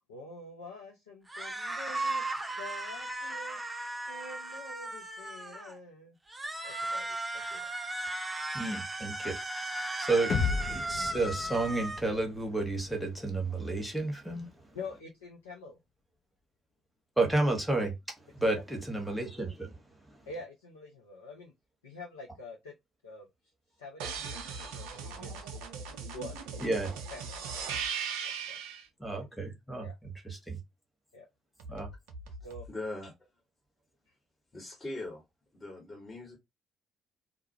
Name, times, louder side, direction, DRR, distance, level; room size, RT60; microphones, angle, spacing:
voice 1, 0.1-2.2 2.5-3.6 4.1-6.2 6.6-7.6 14.7-15.8 20.3-21.5 21.8-22.7 23.0-23.3 23.8-25.6 26.1-26.7 27.1-27.8 28.5-28.7 29.8-30.0 31.1-31.3 32.4-32.7, left 2 dB, 80° left, 0.4 m, -46 dB
sound 1, 1.3-5.8 6.3-12.0, right 2 dB, 20° right, 0.6 m, -36 dB
voice 2, 8.5-14.5 17.2-19.7 20.1-20.2 26.6-26.9 29.0-29.9 30.2-30.6 31.7-31.9, right 2 dB, ahead, 1.0 m, -32 dB
sound 2, 10.3-14.2, left 5 dB, 50° left, 0.8 m, -36 dB
sound 3, 24.0-28.8 31.6-32.7, right 6 dB, 70° right, 0.4 m, -39 dB
voice 3, 32.7-33.1 34.5-35.2 35.5-36.4, left 2 dB, 30° left, 1.2 m, -40 dB
2.2 x 2.0 x 2.7 m
figure-of-eight pair, 45°, 0 cm